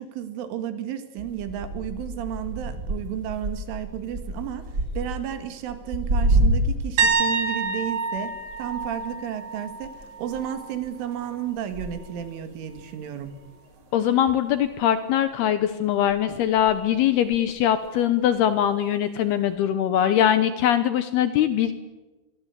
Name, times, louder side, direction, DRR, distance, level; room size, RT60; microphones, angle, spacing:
voice 1, 0.0-4.6 5.0-13.4, right 10 dB, 80° right, 9 dB, 4.5 m, -32 dB
sound 1, 1.2-7.0 7.3-14.4 14.6-15.4 16.1-17.9 18.3-18.7 19.4-19.5, right 1 dB, 25° right, 2.4 m, -30 dB
sound 2, 7.0-10.7 11.1-11.4 14.3-14.4, right 4 dB, 60° right, 4.0 m, -27 dB
voice 2, 13.9-21.7, left 10 dB, 75° left, 11 dB, 2.5 m, -22 dB
25.5 x 22.0 x 8.3 m, 1.2 s
omnidirectional pair, 5.6 m